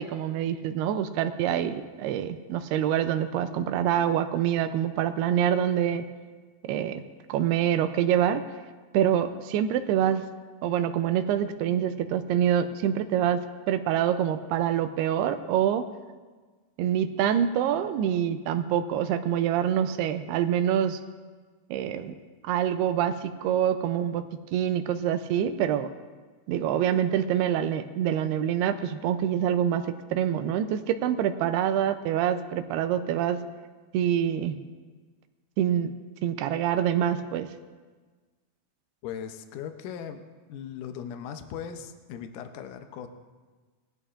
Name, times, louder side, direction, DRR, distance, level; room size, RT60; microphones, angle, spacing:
voice 1, 0.0-6.0 6.6-7.0 7.3-8.4 8.9-10.2 10.6-15.8 16.8-21.0 21.7-22.1 22.4-24.2 24.5-25.9 26.5-33.4 33.9-34.6 35.6-35.9 36.2-37.5, right 10 dB, 85° right, 9 dB, 2.6 m, -26 dB
voice 2, 39.0-40.2 40.5-43.1, left 8 dB, 80° left, 7 dB, 1.9 m, -38 dB
20.5 x 13.5 x 2.5 m, 1.4 s
omnidirectional pair, 4.6 m